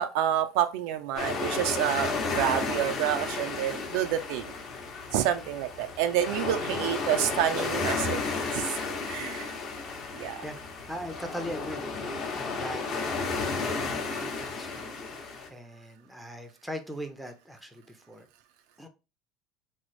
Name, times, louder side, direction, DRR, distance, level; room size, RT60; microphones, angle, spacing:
voice 1, 0.0-4.5 5.1-8.2 8.5-8.8 9.1-9.6 10.1-10.4, right 11 dB, 75° right, 0.4 m, -28 dB
sound 1, 1.2-15.5, left 4 dB, 40° left, 0.8 m, -33 dB
voice 2, 10.2-18.3 18.8-18.9, equal, ahead, 0.5 m, -41 dB
3.1 x 2.0 x 4.1 m
cardioid pair, 135°, 0 cm